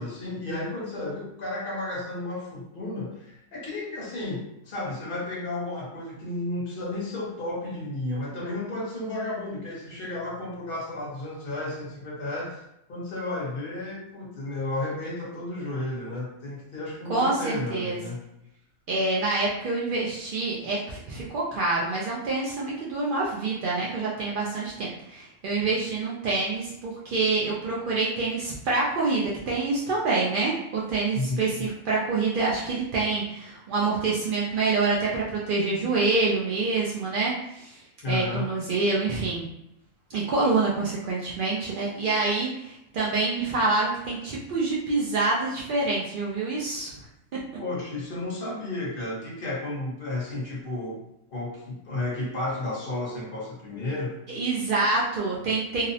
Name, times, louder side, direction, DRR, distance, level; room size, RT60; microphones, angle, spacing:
voice 1, 0.0-12.6 12.9-18.2 31.1-31.7 38.0-38.5 47.6-51.0 51.3-54.2, left 2 dB, 45° left, -4 dB, 0.9 m, -32 dB
voice 2, 17.1-18.0 18.9-37.8 38.1-39.4 40.1-46.9 54.3-55.9, right 3 dB, 80° right, -5 dB, 0.4 m, -26 dB
2.7 x 2.0 x 2.6 m, 0.83 s
omnidirectional pair, 1.5 m